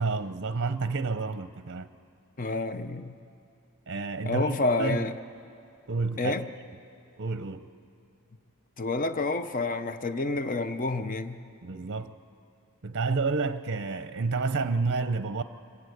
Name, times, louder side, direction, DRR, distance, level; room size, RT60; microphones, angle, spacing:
voice 1, 0.0-1.9 3.9-5.1 5.9-6.3 7.2-7.7 11.6-12.2 12.8-15.4, right 4 dB, 50° right, 0.7 m, -30 dB
voice 2, 2.4-3.1 4.2-5.1 6.2-6.5 8.8-11.4, left 3 dB, 35° left, 0.7 m, -29 dB
25.5 x 17.5 x 8.1 m
head